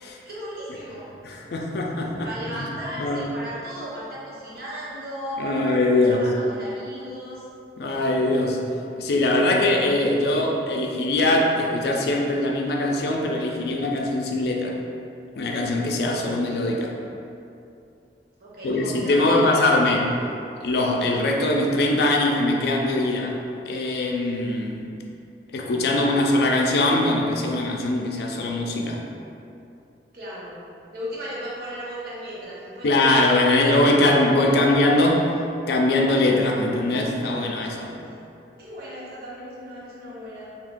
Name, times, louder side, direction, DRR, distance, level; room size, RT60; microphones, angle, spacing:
voice 1, 0.2-1.1 2.2-5.7 6.0-7.4 18.4-19.8 30.1-30.6 30.9-34.1 34.4-34.7 38.0-38.2 38.6-40.5, equal, 55° right, -7 dB, 0.8 m, -35 dB
voice 2, 1.2-2.3 2.6-2.7 3.0-3.3 5.4-6.3 7.8-8.6 9.0-14.8 15.4-16.9 18.6-20.1 20.6-23.4 23.7-24.8 25.5-29.0 32.8-35.3 35.7-38.0, left 2 dB, 60° left, 0 dB, 0.4 m, -22 dB
3.5 x 2.8 x 2.5 m, 2.6 s
head